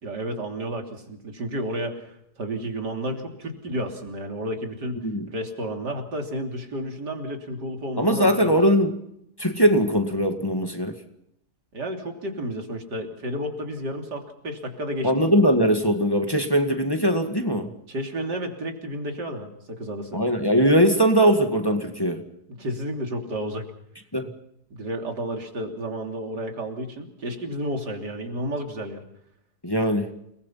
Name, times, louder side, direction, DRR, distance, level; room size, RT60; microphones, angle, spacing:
voice 1, 0.0-2.1 2.4-5.0 5.3-8.6 11.7-15.1 17.9-20.2 22.6-23.7 24.7-29.0, right 1 dB, 85° right, 3 dB, 3.7 m, -31 dB
voice 2, 8.0-8.9 9.4-11.0 15.0-17.7 20.1-22.2 24.1-24.3 29.6-30.1, equal, 15° left, 4 dB, 2.0 m, -20 dB
29.5 x 20.5 x 5.8 m, 0.78 s
omnidirectional pair, 1.7 m